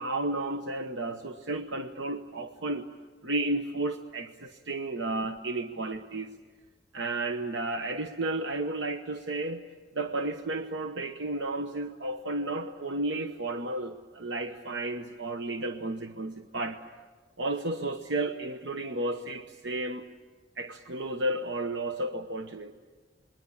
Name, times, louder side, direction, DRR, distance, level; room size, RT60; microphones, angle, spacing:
voice 1, 0.0-2.9 3.2-6.3 6.9-9.6 9.9-16.8 17.4-20.0 20.6-22.7, right 2 dB, 75° right, 7 dB, 1.0 m, -32 dB
27.0 x 21.5 x 8.5 m, 1.5 s
head